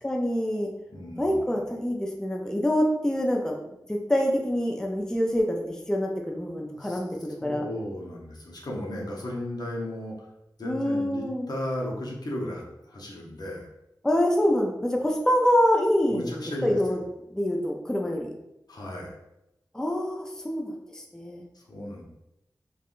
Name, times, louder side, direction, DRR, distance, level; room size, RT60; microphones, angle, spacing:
voice 1, 0.0-0.7 1.2-3.6 3.9-7.6 10.6-11.5 14.0-17.0 17.3-18.3 19.7-21.4, equal, 10° left, 0 dB, 0.4 m, -26 dB
voice 2, 0.9-1.6 6.7-7.0 7.4-10.3 10.6-13.7 16.1-17.1 18.7-19.2 21.5-22.0, left 1 dB, 65° left, -2 dB, 0.7 m, -35 dB
3.4 x 2.2 x 2.4 m, 0.87 s
cardioid pair, 45°, 7 cm